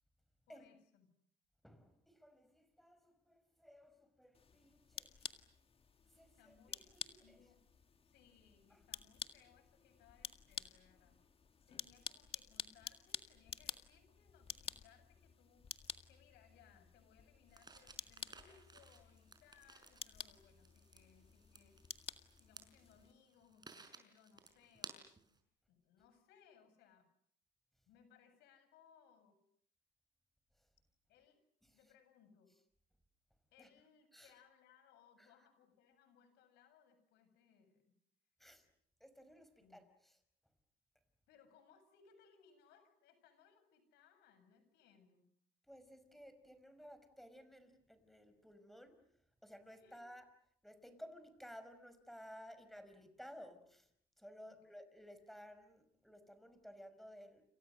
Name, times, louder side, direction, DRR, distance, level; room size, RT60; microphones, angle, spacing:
voice 1, 0.5-1.1 6.4-7.0 7.2-7.6 8.0-11.2 11.7-21.8 22.3-25.3 25.7-27.1 27.9-29.4 31.1-31.4 31.7-32.5 33.5-38.0 39.6-39.8 41.3-45.3 49.8-50.2 54.5-54.6, left 7 dB, 85° left, 10 dB, 7.6 m, -68 dB
voice 2, 1.6-5.3 6.1-7.4 8.7-8.8 31.6-31.8 33.6-33.7 34.1-34.3 35.2-35.3 38.4-38.7 39.0-39.8 45.7-49.0 49.4-50.3 50.6-53.9 54.2-57.4, equal, ahead, 10 dB, 5.5 m, -57 dB
sound 1, 4.3-23.1, left 6 dB, 35° left, 1.9 m, -51 dB
sound 2, 17.5-25.4, right 4 dB, 25° right, 5.7 m, -58 dB
30.0 x 28.5 x 6.6 m, 0.67 s
cardioid pair, 110°, 17 cm